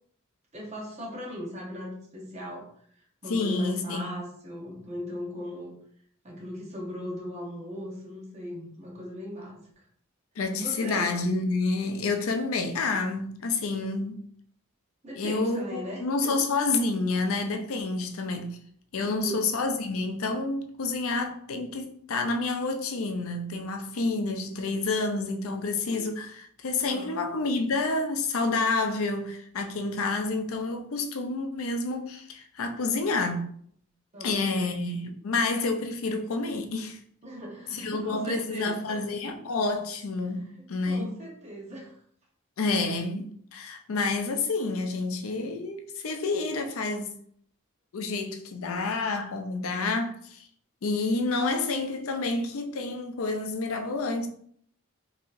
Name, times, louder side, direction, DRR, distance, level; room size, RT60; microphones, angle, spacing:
voice 1, 0.5-2.7 3.2-5.7 6.2-9.6 10.5-11.1 15.0-16.4 19.0-19.4 26.9-27.1 34.1-34.7 37.2-39.0 40.3-41.9, equal, 30° right, 1.0 m, -38 dB
voice 2, 3.3-4.1 10.4-14.2 15.2-18.6 18.9-33.5 34.2-37.0 37.7-41.1 42.6-47.1 47.9-50.4 50.8-54.3, left 3 dB, 75° left, 0.5 m, -29 dB
4.0 x 2.9 x 2.6 m
head